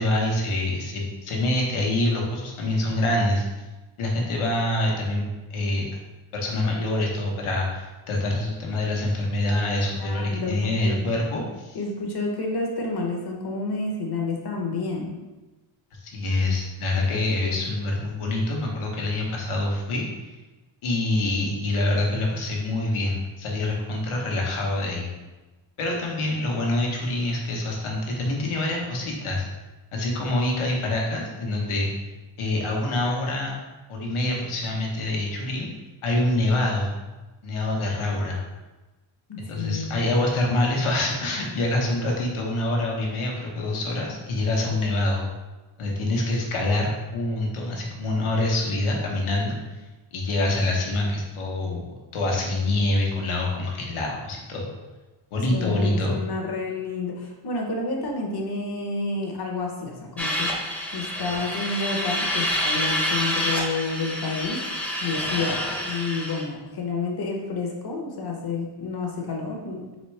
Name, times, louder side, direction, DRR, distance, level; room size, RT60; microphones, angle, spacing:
voice 1, 0.0-3.4 4.0-5.9 6.3-11.8 16.0-20.0 20.8-25.1 25.8-29.5 29.9-31.9 32.4-33.5 33.9-35.7 36.0-36.9 37.4-38.4 39.5-45.3 45.8-49.6 50.1-54.7 55.3-56.2, left 2 dB, 85° left, -1 dB, 1.1 m, -25 dB
voice 2, 10.0-10.5 10.8-11.0 11.7-15.1 39.3-39.9 55.5-60.5 60.9-65.5 65.8-69.8, left 3 dB, 50° left, 1 dB, 0.9 m, -29 dB
sound 1, 60.2-66.4, equal, 5° left, 0.6 m, -28 dB
4.2 x 3.4 x 3.2 m, 1.2 s
wide cardioid pair, 145°, 48 cm